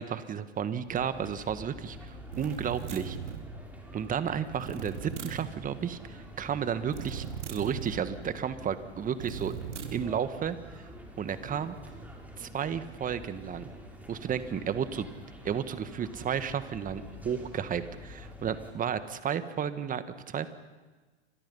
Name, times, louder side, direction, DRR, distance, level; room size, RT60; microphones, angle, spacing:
voice 1, 0.0-3.2 3.9-9.5 9.9-10.6 11.2-11.8 12.4-13.7 14.1-15.1 15.4-20.5, right 8 dB, 25° right, 11 dB, 1.7 m, -32 dB
sound 1, 0.9-18.7, equal, 5° right, 5.8 m, -47 dB
sound 2, 2.3-3.5 4.6-5.5 6.9-8.0 9.2-10.1, right 8 dB, 80° right, 3.1 m, -38 dB
29.5 x 25.5 x 5.6 m, 1.3 s
hypercardioid pair, 105°, 35 cm